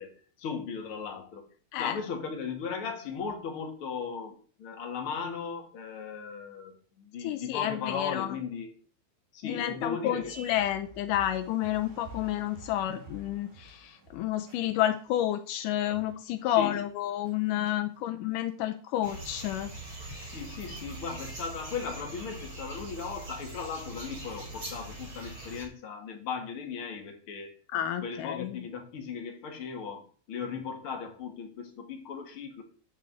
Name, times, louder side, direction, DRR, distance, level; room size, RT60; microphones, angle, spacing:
voice 1, 0.0-1.4 1.8-8.7 9.3-10.3 16.5-16.8 20.2-27.5 28.0-32.6, left 6 dB, 45° left, 3 dB, 2.0 m, -37 dB
voice 2, 7.2-8.4 9.4-19.7 27.7-28.6, left 12 dB, 90° left, 8 dB, 1.8 m, -30 dB
sound 1, 10.2-15.2 15.6-16.1 16.4-16.8 17.2-17.3 17.7-17.8 19.0-19.5 20.2-20.3 20.5-20.7 21.7-21.8 21.9-22.0 22.4-22.6 23.5-23.6 23.8-24.1, right 2 dB, 50° right, 3.7 m, -50 dB
sound 2, 19.0-25.7, right 2 dB, 25° right, 3.2 m, -42 dB
9.1 x 8.5 x 4.1 m, 0.42 s
omnidirectional pair, 4.5 m